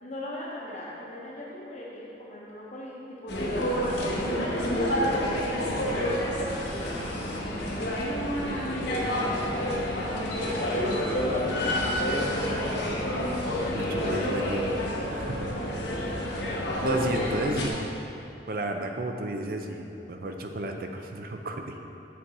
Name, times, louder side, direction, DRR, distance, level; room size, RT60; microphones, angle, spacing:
voice 1, 0.0-4.4 4.7-9.4 10.1-13.2, left 1 dB, 40° left, -5 dB, 0.8 m, -41 dB
sound 1, 3.3-17.7, equal, 70° left, 0.9 m, -28 dB
voice 2, 13.7-14.7 15.1-15.4 16.8-17.8 18.5-21.7, right 1 dB, 55° right, 4 dB, 0.5 m, -32 dB
6.1 x 6.1 x 4.1 m, 2.8 s
head